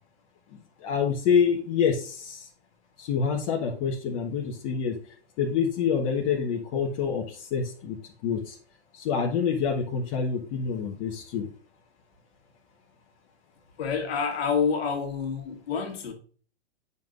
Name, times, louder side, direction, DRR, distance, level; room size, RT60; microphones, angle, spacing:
voice 1, 0.8-2.4 3.0-4.9 5.4-7.2 7.5-8.0 8.2-8.5 9.0-11.4, left 6 dB, 40° left, 1.4 m, -26 dB
voice 2, 13.8-16.1, left 6 dB, 60° left, 2.0 m, -28 dB
9.2 x 5.5 x 2.5 m
figure-of-eight pair, 105°, 34 cm